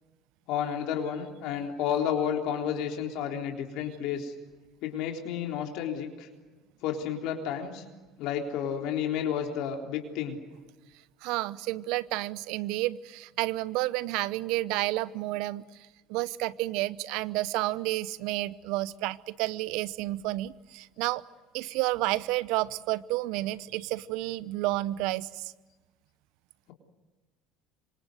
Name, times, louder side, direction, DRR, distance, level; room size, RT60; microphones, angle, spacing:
voice 1, 0.5-4.3 4.8-6.3 6.8-7.8 8.2-10.4, left 8 dB, 65° left, 2 dB, 3.8 m, -31 dB
voice 2, 11.2-21.2 21.5-25.5, right 18 dB, 70° right, 18 dB, 0.8 m, -31 dB
27.0 x 25.0 x 7.9 m, 1.2 s
hypercardioid pair, 70°, 0 cm